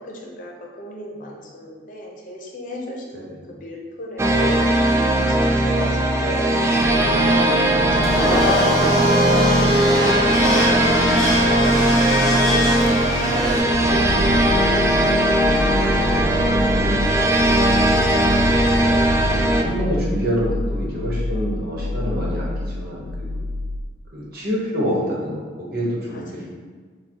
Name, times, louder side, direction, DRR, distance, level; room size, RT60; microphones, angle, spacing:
voice 1, 0.2-4.6 5.1-5.2 5.6-11.8 12.4-13.6 13.9-15.2 26.1-26.2, left 1 dB, 50° left, -1 dB, 0.8 m, -36 dB
voice 2, 3.1-3.5 16.3-18.1 18.8-23.4 24.1-26.5, equal, 60° right, -4 dB, 1.1 m, -28 dB
sound 1, 4.2-19.6, right 1 dB, 15° right, 0.3 m, -19 dB
Domestic sounds home sounds, 8.0-13.6, equal, ahead, 1.4 m, -21 dB
sound 2, 12.8-24.3, left 2 dB, 75° left, 0.3 m, -28 dB
6.6 x 2.3 x 2.9 m, 1.5 s
head